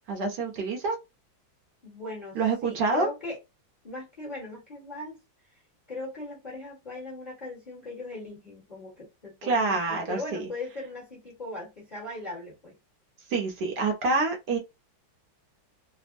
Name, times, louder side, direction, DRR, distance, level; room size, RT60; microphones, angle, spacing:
voice 1, 0.1-1.0 2.3-3.1 9.4-10.4 13.3-14.6, right 3 dB, 65° right, 1.3 m, -27 dB
voice 2, 1.8-3.4 3.8-5.2 5.9-12.7, left 2 dB, 25° left, 1.1 m, -39 dB
3.4 x 2.1 x 2.5 m
omnidirectional pair, 2.1 m